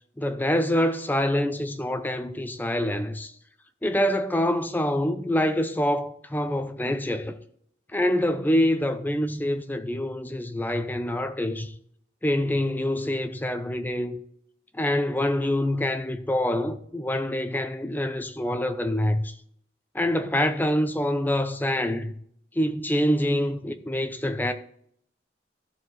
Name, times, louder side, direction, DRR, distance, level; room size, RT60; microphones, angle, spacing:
voice 1, 0.2-3.3 3.8-7.4 7.9-11.7 12.2-14.2 14.7-19.4 19.9-22.1 22.5-24.5, left 1 dB, 10° left, 0.6 m, -26 dB
14.0 x 4.7 x 4.0 m
head